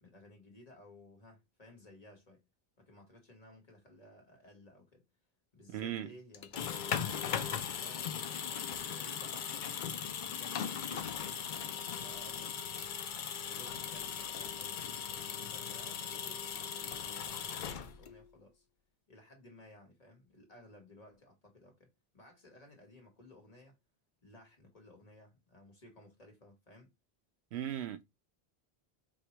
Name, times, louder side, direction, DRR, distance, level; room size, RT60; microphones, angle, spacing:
voice 1, 0.0-2.4 2.8-5.1 5.5-8.2 8.8-12.9 13.3-16.5 17.0-18.7 19.1-23.8 24.2-26.9, left 1 dB, 40° left, 1.2 m, -58 dB
voice 2, 5.7-6.1 27.5-28.0, right 10 dB, 85° right, 0.9 m, -37 dB
sound 1, 6.3-18.3, left 7 dB, 60° left, 0.6 m, -38 dB
4.7 x 2.2 x 2.9 m
omnidirectional pair, 1.1 m